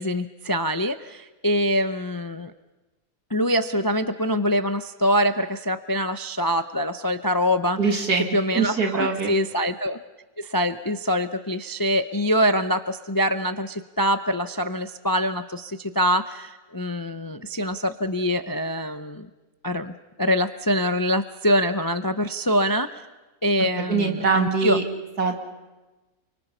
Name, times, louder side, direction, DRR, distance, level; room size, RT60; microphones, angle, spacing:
voice 1, 0.0-2.5 3.3-8.0 8.3-10.0 10.4-19.3 19.6-23.0 23.4-24.8, equal, 35° left, 11 dB, 0.3 m, -24 dB
voice 2, 7.8-8.3 8.5-9.3 23.9-24.8 25.2-25.3, right 4 dB, 85° right, 3 dB, 3.0 m, -22 dB
29.5 x 24.0 x 5.5 m, 1.1 s
omnidirectional pair, 1.6 m